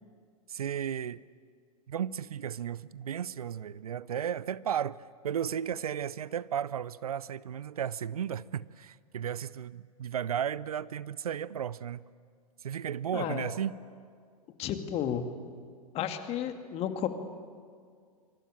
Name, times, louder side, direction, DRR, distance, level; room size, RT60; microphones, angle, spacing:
voice 1, 0.5-1.2 1.9-5.0 5.2-12.0 12.6-13.7, right 9 dB, 70° right, 20 dB, 0.6 m, -34 dB
voice 2, 13.1-13.5 14.6-15.2 15.9-17.1, left 10 dB, 30° left, 7 dB, 2.3 m, -32 dB
25.5 x 24.5 x 8.9 m, 2.1 s
figure-of-eight pair, 100°, 20 cm